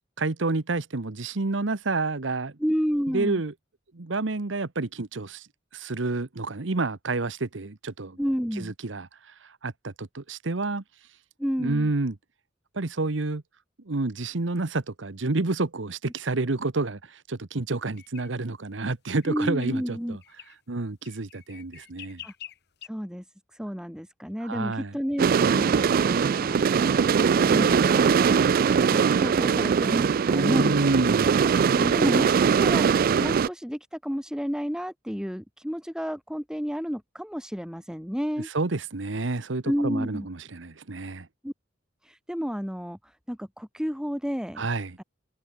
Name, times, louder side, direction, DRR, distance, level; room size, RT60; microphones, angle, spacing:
voice 1, 0.2-2.6 3.1-3.5 3.9-5.5 5.7-8.2 8.6-10.8 11.6-12.1 12.7-13.4 13.9-20.2 20.7-22.2 24.4-24.9 30.3-31.4 38.4-41.3 44.6-45.0, right 3 dB, 75° right, 1.1 m, -29 dB
voice 2, 2.6-3.4 8.2-8.7 11.4-11.9 19.3-20.2 22.2-22.3 22.8-23.2 23.5-28.4 28.9-30.9 31.7-38.5 39.6-40.3 41.4-41.5 42.0-44.6, equal, 5° right, 5.3 m, -31 dB
sound 1, 18.0-18.3 19.2-19.8 20.2-20.6 21.1-22.9, left 12 dB, 60° left, 3.4 m, -46 dB
sound 2, 25.2-33.5, right 6 dB, 50° right, 0.3 m, -21 dB
head